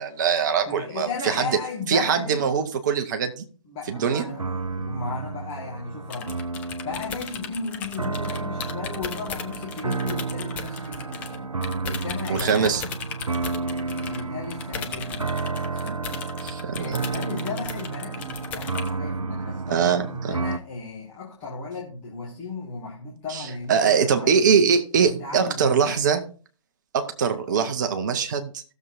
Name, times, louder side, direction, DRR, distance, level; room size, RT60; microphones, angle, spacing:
voice 1, 0.0-1.5 1.9-3.4 3.9-4.2 12.3-12.8 15.8-17.0 19.7-20.4 23.3-26.2 26.9-28.6, right 6 dB, 30° right, 1.0 m, -23 dB
voice 2, 0.7-2.4 3.7-6.4 6.8-11.5 11.8-12.9 13.8-16.2 16.7-24.5 25.0-26.0 27.5-27.7, left 4 dB, 25° left, 2.1 m, -35 dB
sound 1, 3.9-20.6, right 4 dB, 80° right, 0.6 m, -31 dB
sound 2, 6.1-11.4 11.6-18.9, left 7 dB, 10° left, 0.4 m, -37 dB
16.5 x 7.0 x 2.7 m
figure-of-eight pair, 135°, 18 cm